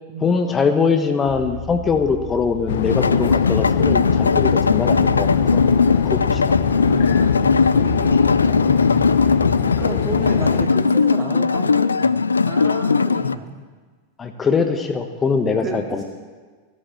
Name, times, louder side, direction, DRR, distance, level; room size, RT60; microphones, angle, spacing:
voice 1, 0.2-5.6 6.0-6.5 14.2-16.0, left 5 dB, 20° left, 6 dB, 1.1 m, -22 dB
sound 1, 1.3-10.0, left 5 dB, 40° left, 2.6 m, -35 dB
sound 2, 2.7-10.7, left 9 dB, 60° left, 0.9 m, -23 dB
sound 3, 2.9-13.3, left 4 dB, 75° left, 0.4 m, -19 dB
voice 2, 6.8-9.4 9.8-13.6 15.6-16.0, right 3 dB, 30° right, -1 dB, 2.2 m, -32 dB
15.5 x 12.0 x 7.3 m, 1.5 s
figure-of-eight pair, 90°, 0 cm